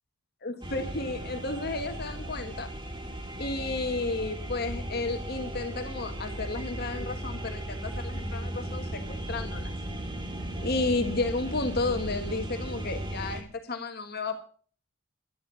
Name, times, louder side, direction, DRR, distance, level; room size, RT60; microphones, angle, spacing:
voice 1, 0.4-2.7 3.4-9.7 10.6-14.4, left 3 dB, 50° left, 7 dB, 1.5 m, -32 dB
sound 1, 0.6-13.4, right 1 dB, 25° right, 2.1 m, -36 dB
12.5 x 10.5 x 5.6 m, 0.44 s
head